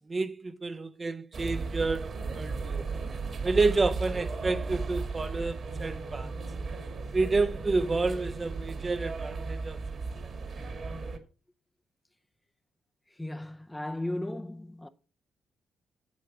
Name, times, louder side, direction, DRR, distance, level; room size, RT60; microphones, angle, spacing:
voice 1, 0.1-2.8 3.4-6.3 7.1-9.8, right 3 dB, 30° right, 0.8 m, -29 dB
sound 1, 1.3-11.2, right 4 dB, 50° right, 2.0 m, -35 dB
voice 2, 13.1-14.9, left 1 dB, 10° left, 0.7 m, -36 dB
8.2 x 8.0 x 4.8 m
cardioid pair, 90°, 0 cm